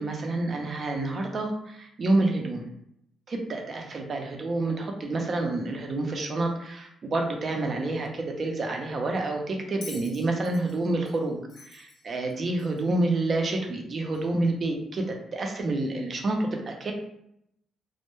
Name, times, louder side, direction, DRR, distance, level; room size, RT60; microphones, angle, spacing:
voice 1, 0.0-2.6 3.3-15.1 15.3-16.9, right 2 dB, 45° right, 2 dB, 0.5 m, -28 dB
Bell, 9.8-13.0 14.1-14.3, left 3 dB, 75° left, 0.7 m, -47 dB
2.1 x 2.1 x 3.0 m, 0.75 s
cardioid pair, 90°, 0 cm